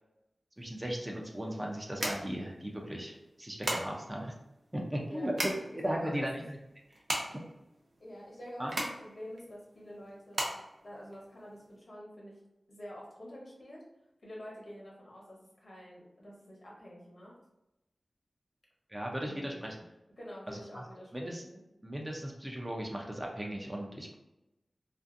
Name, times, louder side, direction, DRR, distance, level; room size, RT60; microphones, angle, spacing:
voice 1, 0.6-4.3 4.7-6.6 8.6-8.7 18.9-19.8 20.5-20.8 21.1-21.4 21.8-24.1, equal, 20° right, -1 dB, 0.5 m, -37 dB
sound 1, 0.6-11.7, right 1 dB, 80° right, 0.5 m, -39 dB
voice 2, 5.0-5.4 5.9-6.4 8.0-12.4 12.7-13.8 14.2-17.4 19.2-19.6 20.2-21.6, equal, 60° left, -4 dB, 0.9 m, -48 dB
2.5 x 2.4 x 2.5 m, 0.93 s
wide cardioid pair, 75°, 0 cm